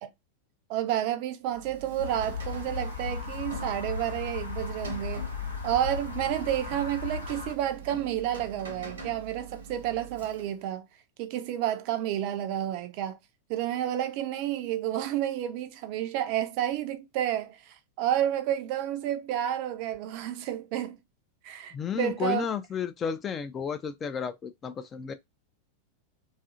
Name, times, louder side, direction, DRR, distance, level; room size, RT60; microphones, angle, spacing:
voice 1, 0.7-5.3 5.6-10.9 11.2-13.2 13.5-21.0 21.4-22.4, right 11 dB, 45° right, 0.4 m, -30 dB
Rain, 1.4-10.7, right 4 dB, 65° right, 0.8 m, -44 dB
sound 1, 2.0-7.5, left 5 dB, 85° left, 0.8 m, -36 dB
voice 2, 21.7-25.1, left 7 dB, 25° left, 0.3 m, -32 dB
2.6 x 2.4 x 2.5 m
figure-of-eight pair, 90°, 0 cm